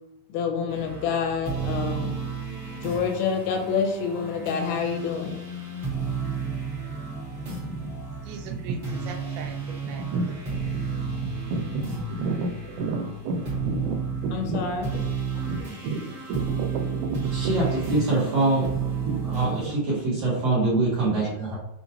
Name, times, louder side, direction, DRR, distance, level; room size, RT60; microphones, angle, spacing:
voice 1, 0.3-2.2 2.8-5.4 14.3-14.9, left 6 dB, 80° left, 3 dB, 2.4 m, -27 dB
sound 1, 0.7-19.7, right 5 dB, 40° right, 1.5 m, -32 dB
voice 2, 7.5-7.8 8.2-9.6 9.8-10.4 10.7-10.8 11.2-14.0 14.2-14.7 15.5-17.2 17.4-17.5 17.9-18.0 19.0-19.7 21.2-21.3, right 4 dB, 90° right, 4 dB, 2.6 m, -31 dB
voice 3, 17.3-17.6 17.9-18.7 19.3-21.6, right 2 dB, 65° right, -8 dB, 1.6 m, -24 dB
6.3 x 2.9 x 2.7 m, 0.85 s
omnidirectional pair, 4.4 m